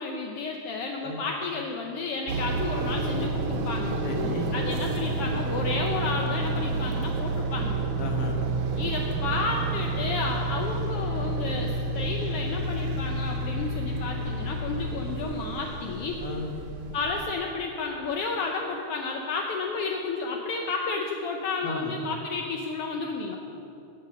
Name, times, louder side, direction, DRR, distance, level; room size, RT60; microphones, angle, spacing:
voice 1, 0.0-4.0 4.5-7.8 8.8-16.2 16.9-23.4, left 4 dB, 80° left, 1 dB, 1.3 m, -32 dB
sound 1, 2.3-17.3, right 2 dB, 70° right, 2.1 m, -29 dB
voice 2, 4.0-4.5 8.0-8.4 16.2-16.5 21.6-21.9, left 1 dB, 50° left, 1 dB, 1.3 m, -33 dB
17.0 x 5.7 x 6.2 m, 2.7 s
omnidirectional pair, 3.5 m